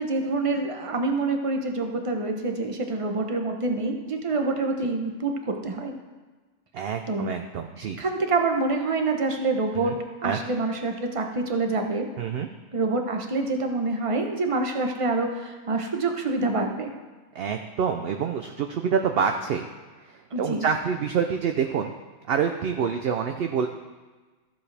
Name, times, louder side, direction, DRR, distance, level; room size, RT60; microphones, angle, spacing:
voice 1, 0.0-5.9 7.1-7.3 8.0-9.9 10.2-12.0 12.7-16.9 20.3-20.6, right 3 dB, 30° right, 3 dB, 0.8 m, -26 dB
voice 2, 6.7-8.0 9.7-10.0 10.2-10.4 12.2-12.5 17.3-19.7 20.0-21.9 22.2-23.7, right 7 dB, 60° right, 5 dB, 0.6 m, -27 dB
13.5 x 7.2 x 3.4 m, 1.3 s
omnidirectional pair, 1.4 m